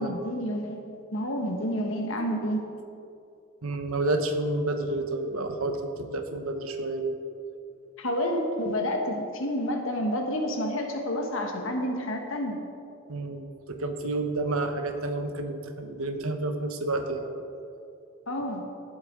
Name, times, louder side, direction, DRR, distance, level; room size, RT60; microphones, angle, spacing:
voice 1, 0.0-2.6 8.0-12.6 18.3-18.6, equal, 70° left, 3 dB, 1.4 m, -29 dB
voice 2, 3.6-7.2 13.1-17.3, right 2 dB, 85° right, 6 dB, 1.0 m, -30 dB
17.5 x 7.7 x 3.8 m, 2.6 s
head